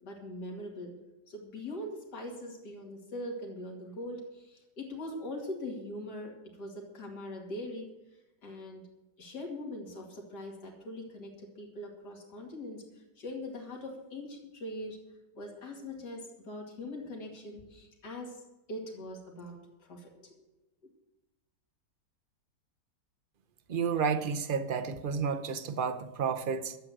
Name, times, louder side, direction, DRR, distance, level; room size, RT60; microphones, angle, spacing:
voice 1, 0.0-0.9 1.3-7.8 8.4-8.8 9.2-12.8 13.2-15.0 15.3-18.4 18.7-20.4, left 1 dB, 70° left, 3.1 m, -42 dB
voice 2, 23.7-26.8, right 6 dB, 50° right, 0.6 m, -31 dB
12.5 x 8.2 x 7.7 m
omnidirectional pair, 1.9 m